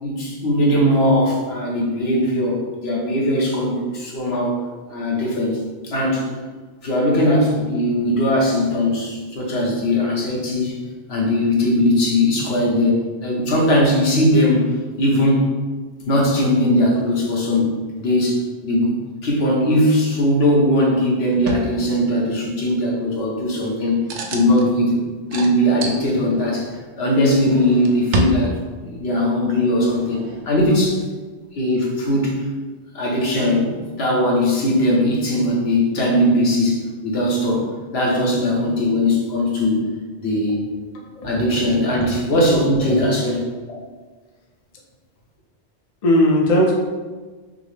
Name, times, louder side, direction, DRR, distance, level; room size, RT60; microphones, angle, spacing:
voice 1, 0.0-4.6 4.9-6.2 6.8-10.8 11.1-14.7 15.0-15.5 16.1-19.0 19.2-24.0 24.3-25.0 25.3-31.0 31.5-32.3 32.9-39.8 40.2-40.6 41.2-43.4, left 1 dB, 70° left, -2 dB, 1.1 m, -19 dB
sound 1, 21.3-21.7 24.1-24.7 25.3-26.6 27.3-28.9 29.6-30.7 31.8-31.9, right 1 dB, 90° right, 0.9 m, -28 dB
voice 2, 40.9-42.1 42.8-43.0 43.7-43.8 46.0-46.7, left 1 dB, 45° left, -2 dB, 0.6 m, -20 dB
5.7 x 2.0 x 3.1 m, 1.4 s
omnidirectional pair, 1.1 m